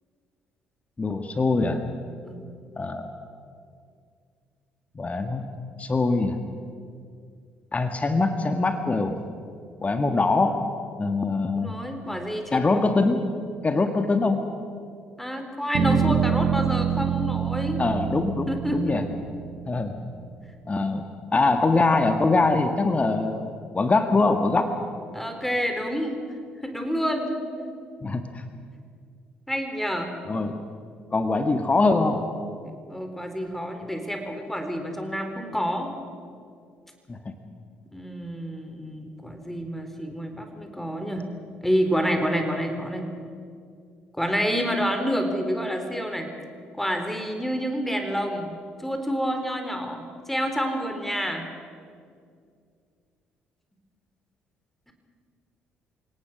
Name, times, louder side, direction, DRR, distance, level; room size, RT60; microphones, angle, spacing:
voice 1, 1.0-1.8 2.8-3.1 4.9-5.5 5.8-6.4 7.7-9.1 9.8-10.6 11.0-11.7 12.5-13.2 13.6-14.4 17.8-19.0 19.7-19.9 20.7-21.0 21.3-23.5 23.7-24.7 28.0-28.3 30.3-30.6 31.1-32.2 37.1-37.2, left 3 dB, 25° left, 7 dB, 1.7 m, -23 dB
voice 2, 11.6-12.7 15.2-17.8 18.5-19.0 25.1-26.3 26.6-27.3 27.6-27.7 29.5-30.1 32.6-35.9 37.9-41.3 41.6-43.1 44.2-46.3 46.8-48.5 48.8-51.4, equal, 5° left, 5 dB, 4.2 m, -28 dB
sound 1, 15.7-19.8, right 7 dB, 60° right, 5.8 m, -26 dB
29.0 x 18.0 x 6.2 m, 2.2 s
figure-of-eight pair, 45°, 5 cm